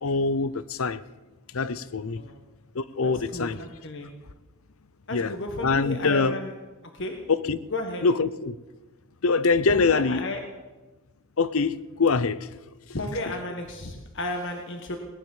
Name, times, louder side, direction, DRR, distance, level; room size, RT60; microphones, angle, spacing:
voice 1, 0.0-1.0 1.5-2.2 2.7-3.6 5.1-5.4 5.6-6.4 7.3-7.6 8.0-8.6 9.2-10.3 11.4-12.5 13.3-13.4, left 4 dB, 80° left, 0.7 m, -24 dB
voice 2, 3.0-4.1 5.1-6.5 6.9-7.1 7.7-8.1 9.7-10.4 12.9-15.0, left 2 dB, 60° left, 1.6 m, -33 dB
19.0 x 10.5 x 7.3 m
head